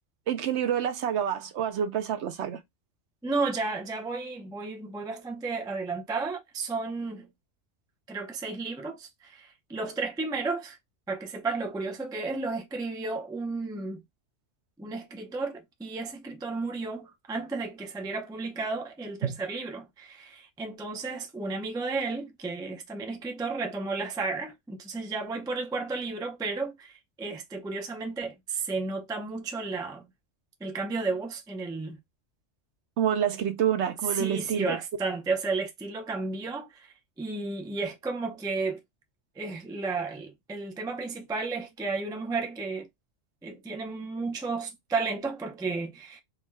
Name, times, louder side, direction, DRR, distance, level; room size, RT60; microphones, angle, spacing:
voice 1, 0.3-2.6 19.2-19.3 33.0-34.8, right 9 dB, 70° right, 0.8 m, -27 dB
voice 2, 3.2-7.3 8.1-10.8 11.1-14.0 14.8-30.1 30.6-32.0 34.0-38.8 39.4-42.9 43.4-46.2, right 3 dB, 5° right, 0.3 m, -33 dB
3.6 x 2.3 x 3.1 m
omnidirectional pair, 1.3 m